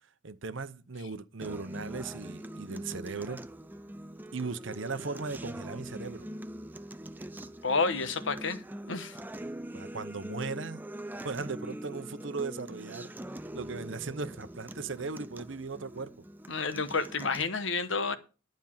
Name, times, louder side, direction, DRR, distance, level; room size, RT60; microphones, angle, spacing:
voice 1, 0.2-3.4 4.3-6.3 9.7-10.8 11.2-13.1 13.5-16.1, right 4 dB, 65° right, 0.8 m, -37 dB
Acoustic guitar, 1.4-17.4, right 1 dB, 10° right, 0.4 m, -43 dB
voice 2, 7.6-8.6 8.9-9.2 16.5-18.2, left 4 dB, 65° left, 1.2 m, -30 dB
12.0 x 5.4 x 7.2 m
head